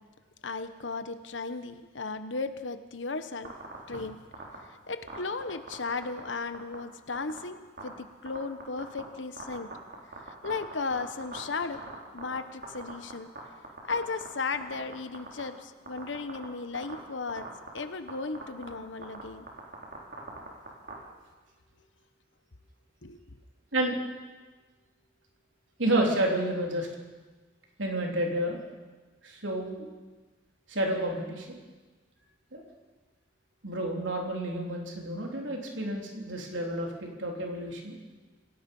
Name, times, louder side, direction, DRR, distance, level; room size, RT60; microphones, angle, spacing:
voice 1, 0.4-3.5 3.9-4.2 4.6-7.6 7.8-9.7 10.3-11.8 12.1-13.3 13.8-17.5 17.7-19.5 23.0-23.2, left 4 dB, 80° left, 10 dB, 1.1 m, -35 dB
sound 1, 3.4-4.0 4.3-4.6 5.1-6.3 6.5-6.8 7.1-7.4 7.8-7.9 8.3-9.0 9.4-12.4 12.6-13.4 13.6-14.3 14.5-15.4 15.9-16.4 16.7-16.9 17.3-17.8 18.1-18.2 18.4-18.7 19.0-19.2 19.5-20.9, right 3 dB, 55° right, 4.6 m, -40 dB
voice 2, 25.8-26.9 27.8-28.6 29.2-29.8 30.7-31.5 32.5-32.6 33.6-38.0, right 1 dB, 85° right, 0 dB, 3.7 m, -30 dB
27.5 x 17.5 x 5.6 m, 1.3 s
head